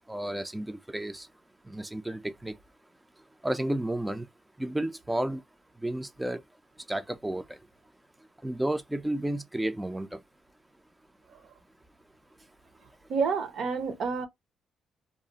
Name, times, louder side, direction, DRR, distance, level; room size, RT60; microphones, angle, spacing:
voice 1, 0.1-1.3 1.7-2.5 3.4-4.3 4.6-5.4 5.8-6.4 6.9-7.6 8.4-10.2, right 1 dB, 10° right, 0.3 m, -32 dB
voice 2, 13.1-14.3, right 5 dB, 65° right, 0.7 m, -28 dB
2.4 x 2.3 x 3.8 m
cardioid pair, 90°, 0 cm